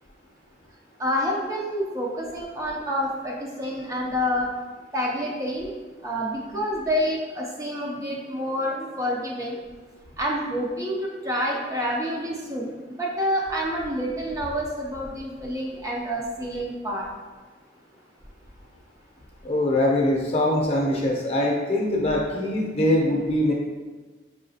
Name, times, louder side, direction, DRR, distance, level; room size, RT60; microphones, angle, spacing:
voice 1, 1.0-4.5 4.9-5.7 6.0-9.6 10.2-17.0, equal, 20° right, -3 dB, 0.4 m, -28 dB
voice 2, 19.4-23.5, left 1 dB, 35° left, -1 dB, 0.7 m, -23 dB
4.9 x 2.8 x 2.7 m, 1.3 s
head